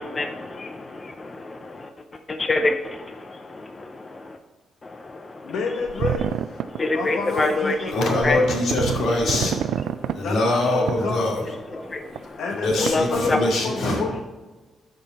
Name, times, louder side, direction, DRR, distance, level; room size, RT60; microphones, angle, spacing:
voice 1, 0.0-1.9 2.3-4.4 4.8-5.5 6.7-8.0 8.2-8.4 10.0-10.2 11.7-12.4 12.7-13.4, left 2 dB, 25° left, 0.5 m, -27 dB
voice 2, 5.4-6.3 6.9-8.3 10.2-11.3 12.4-14.2, left 4 dB, 80° left, 1.1 m, -29 dB
sound 1, 5.9-6.8 7.4-7.5 7.9-8.0 8.2-10.2 10.9-11.5 12.2-12.3 12.7-13.2, right 10 dB, 75° right, 0.3 m, -27 dB
voice 3, 7.9-9.6 10.1-11.9 12.5-14.0, left 2 dB, 65° left, 2.6 m, -23 dB
13.0 x 5.3 x 4.1 m
cardioid pair, 150°, 0 cm